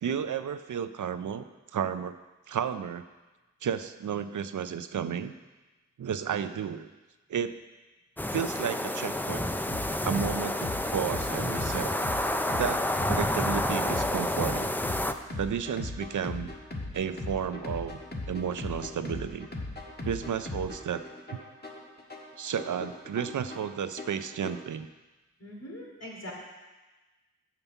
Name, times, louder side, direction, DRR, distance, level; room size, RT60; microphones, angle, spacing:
voice 1, 0.0-1.4 1.7-2.2 2.5-3.0 3.6-5.3 6.0-6.9 7.3-7.5 8.3-9.5 10.0-11.9 12.6-12.8 13.1-14.8 15.4-16.5 16.9-18.0 18.3-19.5 20.0-21.0 21.3-21.4 22.4-24.9, right 8 dB, 85° right, 11 dB, 0.5 m, -32 dB
sound 1, 8.2-15.1, left 1 dB, 5° left, 0.4 m, -29 dB
sound 2, 9.7-24.7, left 2 dB, 35° left, 1.5 m, -39 dB
voice 2, 25.4-26.3, equal, 60° left, -2 dB, 2.6 m, -42 dB
7.3 x 5.8 x 6.9 m, 1.2 s
wide cardioid pair, 60°, 30 cm